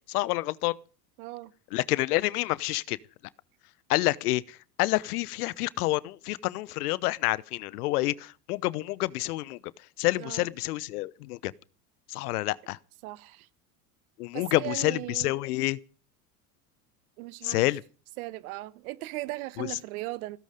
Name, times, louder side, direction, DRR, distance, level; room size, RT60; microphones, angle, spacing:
voice 1, 0.1-0.8 1.7-3.0 3.9-9.6 10.0-11.5 12.1-12.8 14.2-15.8 17.4-17.8 19.6-19.8, left 18 dB, 70° left, 0.9 m, -28 dB
voice 2, 1.2-1.5 10.2-10.5 13.0-13.5 14.3-15.3 17.2-17.6 18.2-20.4, right 19 dB, 65° right, 1.3 m, -38 dB
16.5 x 15.0 x 5.2 m
hypercardioid pair, 85°, 47 cm